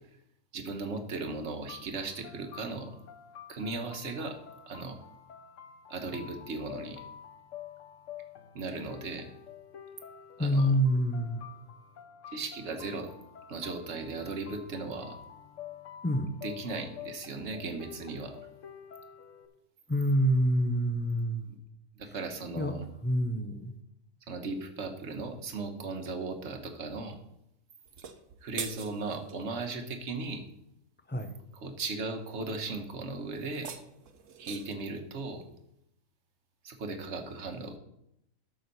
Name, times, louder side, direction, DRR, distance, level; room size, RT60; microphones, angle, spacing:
voice 1, 0.5-2.9 3.5-4.4 4.7-5.0 5.9-7.0 8.5-9.3 10.4-10.7 12.3-13.1 13.5-15.2 16.4-18.3 22.0-22.9 24.3-27.2 28.4-30.4 31.6-33.7 34.4-35.4 36.6-37.8, right 3 dB, 65° right, 5 dB, 1.4 m, -37 dB
sound 1, 1.7-19.5, left 9 dB, 80° left, 1.2 m, -49 dB
voice 2, 10.4-11.5 16.0-16.3 19.9-21.5 22.6-23.8 31.1-31.4, equal, 15° left, 7 dB, 0.3 m, -27 dB
sound 2, 27.9-29.4 33.4-34.9, right 7 dB, 80° right, 1.2 m, -43 dB
12.0 x 6.4 x 4.1 m, 0.80 s
omnidirectional pair, 1.3 m